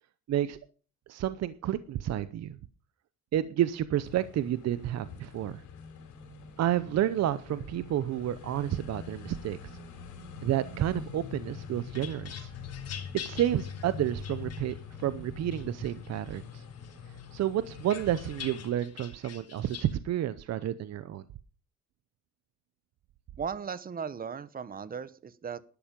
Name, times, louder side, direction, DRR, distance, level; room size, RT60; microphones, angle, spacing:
voice 1, 0.3-0.6 1.1-2.6 3.3-5.6 6.6-9.6 10.4-12.5 13.2-16.6 17.3-21.2, right 12 dB, 60° right, 14 dB, 0.7 m, -30 dB
sound 1, 4.0-18.7, left 6 dB, 85° left, 4.6 m, -44 dB
sound 2, 11.5-15.1 15.5-16.4 16.8-19.9, left 8 dB, 55° left, 3.5 m, -46 dB
voice 2, 23.4-25.6, right 6 dB, 30° right, 17 dB, 0.9 m, -37 dB
12.0 x 12.0 x 5.2 m, 0.38 s
cardioid pair, 130°, 30 cm